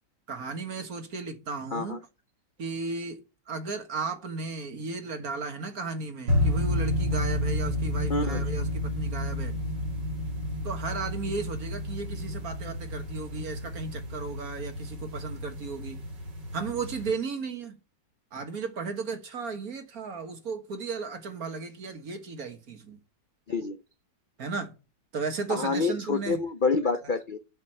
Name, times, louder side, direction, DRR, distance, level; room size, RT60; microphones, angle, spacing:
voice 1, 0.3-2.0 2.6-3.2 3.5-9.5 10.6-16.0 16.5-17.8 18.3-23.0 24.4-24.7 25.1-26.4, right 4 dB, 55° right, 1.9 m, -35 dB
sound 1, 6.3-17.1, left 1 dB, 70° right, 2.9 m, -31 dB
voice 2, 8.1-8.4 23.5-23.8 25.5-27.4, left 4 dB, 80° left, 0.4 m, -27 dB
7.6 x 6.5 x 7.8 m
omnidirectional pair, 2.0 m